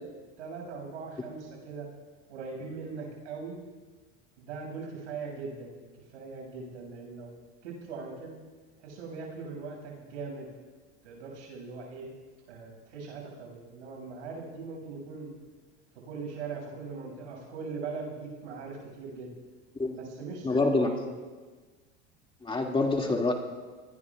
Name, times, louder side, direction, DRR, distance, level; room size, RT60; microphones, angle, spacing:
voice 1, 0.4-1.9 2.3-3.6 4.4-7.3 7.6-8.4 8.8-10.5 11.0-12.1 12.5-15.3 16.0-19.4 19.9-21.1, right 4 dB, 85° right, 0 dB, 7.0 m, -40 dB
voice 2, 20.4-20.9 22.4-23.3, left 3 dB, 15° left, 1 dB, 2.4 m, -26 dB
27.5 x 20.5 x 2.5 m, 1.4 s
hypercardioid pair, 95°, 34 cm